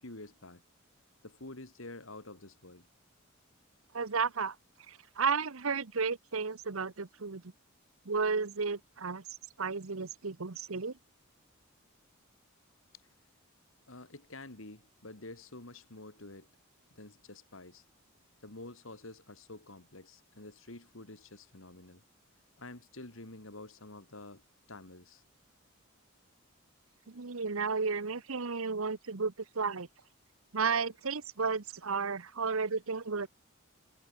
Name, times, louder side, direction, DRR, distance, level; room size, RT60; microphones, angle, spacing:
voice 1, 0.0-0.6 1.2-2.9 13.9-16.5 17.0-17.8 18.4-22.0 22.6-24.4 24.7-25.2, left 2 dB, 65° left, 2.8 m, -48 dB
voice 2, 3.9-4.5 4.9-7.4 8.0-9.2 9.6-10.9 27.1-29.9 30.5-33.3, right 5 dB, 75° right, 1.1 m, -33 dB
head